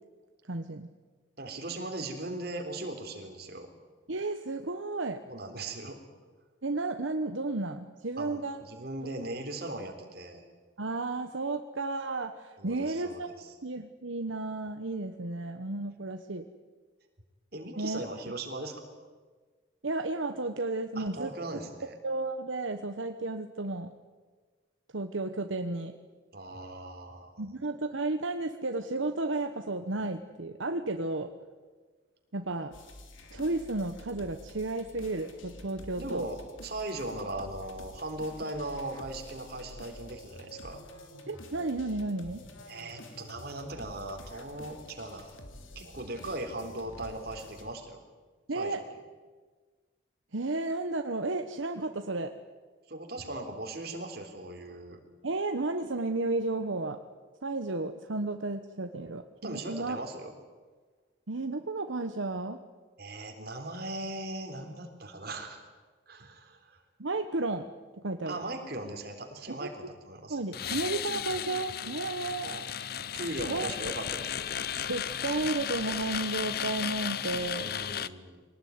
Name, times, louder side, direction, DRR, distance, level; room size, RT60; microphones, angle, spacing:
voice 1, 0.5-0.9 4.1-5.2 6.6-8.6 10.8-16.4 17.8-18.0 18.3-18.4 19.8-21.6 22.0-23.9 24.9-25.9 27.4-31.3 32.3-32.7 33.3-36.3 41.3-42.4 48.5-48.8 50.3-52.3 55.2-57.0 57.4-60.0 61.3-62.6 67.0-67.7 68.0-68.4 69.6-69.7 70.3-72.6 73.5-73.7 74.9-77.8, right 2 dB, 75° right, 7 dB, 1.1 m, -33 dB
voice 2, 1.4-3.7 5.3-6.0 8.2-10.5 12.6-13.5 17.5-18.9 21.0-21.9 26.3-27.4 36.0-40.8 42.7-45.3 45.8-48.0 48.5-48.8 52.9-55.0 59.4-60.3 63.0-65.6 66.1-66.8 68.3-70.4 73.1-74.5 77.6-78.4, right 2 dB, 50° right, 4 dB, 3.7 m, -39 dB
sound 1, 32.7-47.7, left 1 dB, 80° left, 3.2 m, -49 dB
sound 2, 70.5-78.1, left 9 dB, 50° left, 0.7 m, -35 dB
24.0 x 19.0 x 9.6 m, 1.4 s
head